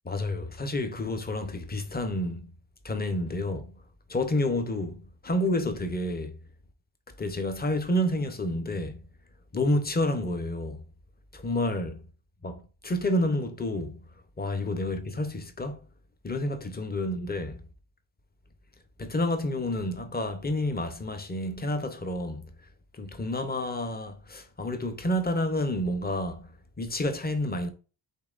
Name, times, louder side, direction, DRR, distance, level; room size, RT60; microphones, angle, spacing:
voice 1, 0.0-2.4 2.8-3.7 4.1-6.4 7.2-9.0 9.5-10.8 11.3-12.0 12.4-14.0 14.4-15.8 16.2-17.6 19.0-22.5 22.9-26.5 26.8-27.7, left 1 dB, 20° left, 0.6 m, -29 dB
5.4 x 3.6 x 2.4 m
wide cardioid pair, 180°, 46 cm